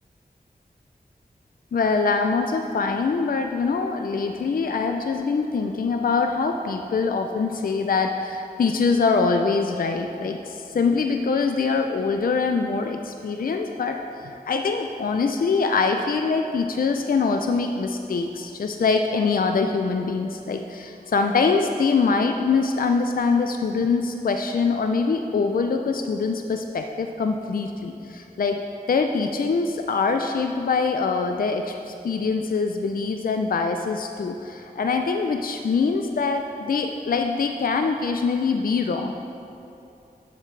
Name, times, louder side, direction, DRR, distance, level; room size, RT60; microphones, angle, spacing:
voice 1, 1.7-28.6 28.9-39.2, left 4 dB, 60° left, 5 dB, 0.4 m, -24 dB
11.0 x 6.6 x 3.2 m, 2.7 s
wide cardioid pair, 75°, 17 cm